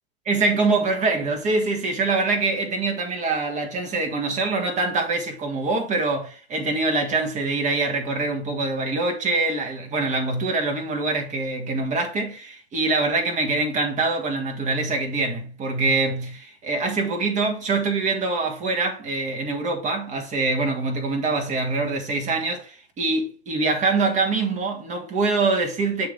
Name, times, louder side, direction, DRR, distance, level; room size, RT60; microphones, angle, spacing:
voice 1, 0.2-26.1, right 3 dB, 25° right, 1.6 m, -24 dB
7.1 x 3.4 x 5.1 m
hypercardioid pair, 120°, 31 cm